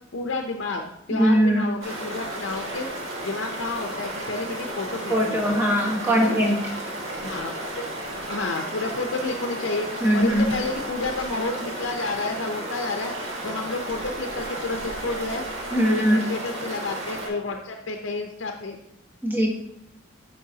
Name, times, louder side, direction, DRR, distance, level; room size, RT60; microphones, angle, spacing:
voice 1, 0.1-2.9 3.2-5.8 6.2-6.4 7.2-7.9 8.3-18.8, left 3 dB, 70° left, 4 dB, 0.6 m, -31 dB
voice 2, 1.1-1.6 5.1-6.6 10.0-10.5 15.7-16.2 19.2-19.5, equal, 10° right, -2 dB, 1.2 m, -20 dB
sound 1, 1.8-17.3, right 1 dB, 90° right, 1.7 m, -33 dB
8.6 x 5.4 x 2.8 m, 0.76 s
head